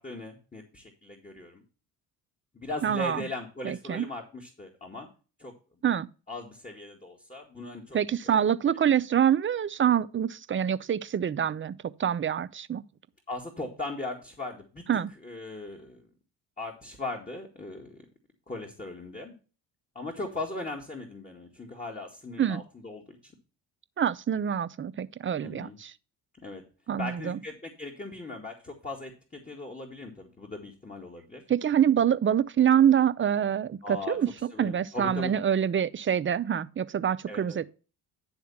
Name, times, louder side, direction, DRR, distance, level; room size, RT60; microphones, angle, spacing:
voice 1, 0.0-1.6 2.5-5.1 5.4-5.5 6.3-8.0 8.2-8.4 13.3-14.8 15.2-16.0 16.6-18.1 18.5-19.3 20.0-23.3 25.4-25.8 26.4-26.6 27.0-31.4 33.8-34.2 34.5-35.4 37.3-37.6, left 2 dB, 15° left, 2.0 m, -39 dB
voice 2, 2.8-3.3 3.6-4.1 5.8-6.1 7.9-11.7 12.0-12.8 14.9-15.1 22.4-22.6 24.0-25.9 26.9-27.4 31.5-34.3 34.6-37.7, right 9 dB, 25° right, 0.6 m, -25 dB
10.5 x 3.6 x 7.1 m
hypercardioid pair, 60°, 47 cm